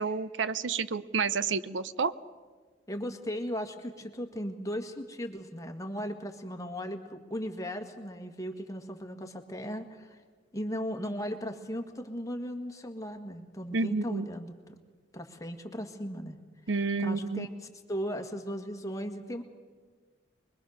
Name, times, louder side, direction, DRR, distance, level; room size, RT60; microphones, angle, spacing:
voice 1, 0.0-2.1 13.7-14.3 16.7-17.5, right 4 dB, 80° right, 15 dB, 0.7 m, -30 dB
voice 2, 2.9-10.2 10.5-14.7 15.1-16.4 17.0-17.5 17.9-19.4, equal, 20° left, 4 dB, 1.8 m, -37 dB
25.0 x 21.5 x 6.5 m, 1.4 s
head